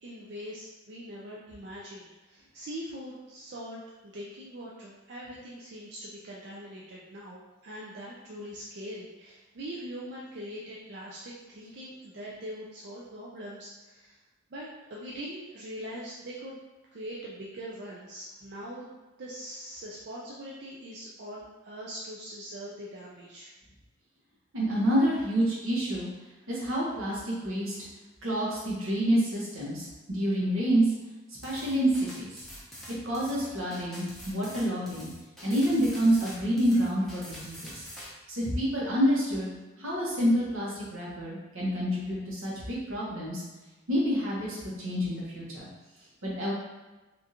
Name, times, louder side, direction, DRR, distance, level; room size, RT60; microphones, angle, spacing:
voice 1, 0.0-14.2 14.5-16.6 16.9-18.9 19.2-23.5 26.4-26.5, equal, 55° right, -5 dB, 0.4 m, -42 dB
voice 2, 24.5-26.1 26.5-27.7 28.2-30.8 31.4-32.4 33.0-35.1 35.4-37.8 38.3-39.5 39.8-43.4 43.9-45.7 46.2-46.5, equal, 85° right, -6 dB, 1.1 m, -28 dB
sound 1, 31.4-38.1, equal, ahead, 0.6 m, -45 dB
3.5 x 2.5 x 2.8 m, 1.1 s
head